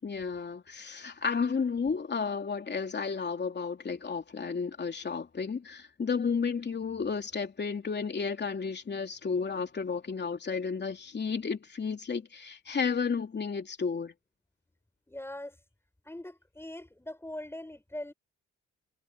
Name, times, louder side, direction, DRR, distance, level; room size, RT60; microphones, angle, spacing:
voice 1, 0.0-14.1, left 5 dB, 35° left, 3.2 m, -32 dB
voice 2, 15.1-15.6 16.0-18.1, left 1 dB, 10° left, 6.9 m, -41 dB
cardioid pair, 90°, 30 cm